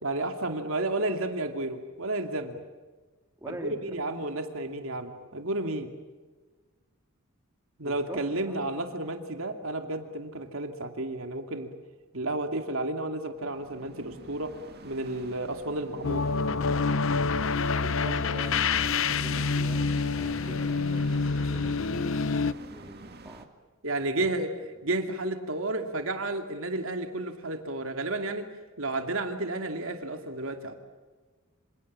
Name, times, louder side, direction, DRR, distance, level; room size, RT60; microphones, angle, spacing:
voice 1, 0.0-2.6 3.5-3.6 3.8-5.9 7.8-11.7 12.1-14.5 14.8-16.3 23.8-24.5 24.8-28.4 28.8-30.8, right 2 dB, 70° right, 5 dB, 2.4 m, -32 dB
voice 2, 3.4-4.4 7.8-8.9 17.4-21.1 21.5-23.5 24.2-24.3, right 1 dB, 15° right, 2 dB, 3.3 m, -44 dB
sound 1, 13.3-23.5, right 2 dB, 50° right, 2.2 m, -47 dB
sound 2, 16.0-22.5, left 4 dB, 65° left, 0.8 m, -27 dB
27.5 x 27.5 x 7.5 m, 1.3 s
head